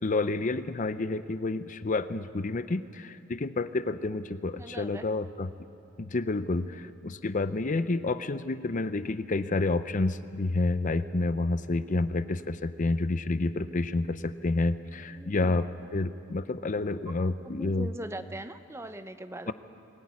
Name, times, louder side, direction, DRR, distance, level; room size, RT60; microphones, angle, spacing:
voice 1, 0.0-5.5 6.0-15.7 15.9-17.9 19.5-19.6, left 2 dB, 40° left, 12 dB, 0.6 m, -29 dB
voice 2, 4.5-5.1 15.1-15.7 17.5-19.5, right 1 dB, 15° right, 10 dB, 0.6 m, -41 dB
21.0 x 16.0 x 9.6 m, 2.6 s
head